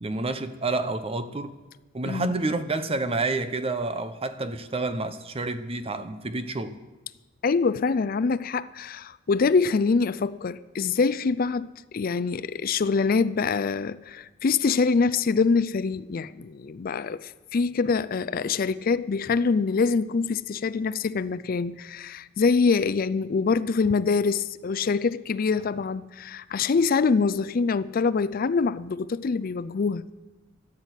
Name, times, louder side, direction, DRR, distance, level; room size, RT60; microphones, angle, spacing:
voice 1, 0.0-1.6 1.9-6.8, right 3 dB, 30° right, 0.8 m, -29 dB
voice 2, 7.4-30.0, left 4 dB, 50° left, 0.4 m, -25 dB
12.5 x 11.0 x 8.1 m
head